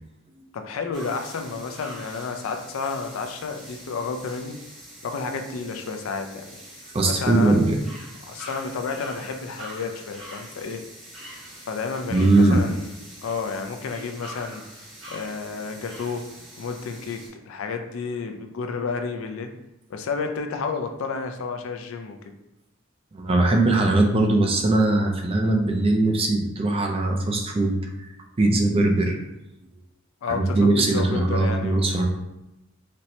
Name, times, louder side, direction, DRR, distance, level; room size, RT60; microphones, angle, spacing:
voice 1, 0.5-4.6 5.0-6.6 7.0-7.6 8.2-10.8 11.7-12.9 13.2-16.2 16.6-19.5 19.9-22.2 30.2-31.9, left 4 dB, 80° left, 6 dB, 0.4 m, -31 dB
sound 1, 0.9-17.3, equal, 75° right, 1.3 m, -44 dB
voice 2, 6.9-7.8 12.1-12.6 23.1-28.1 28.4-29.2 30.3-32.0, right 2 dB, 30° right, 3 dB, 0.4 m, -20 dB
4.2 x 2.1 x 2.7 m, 0.92 s
head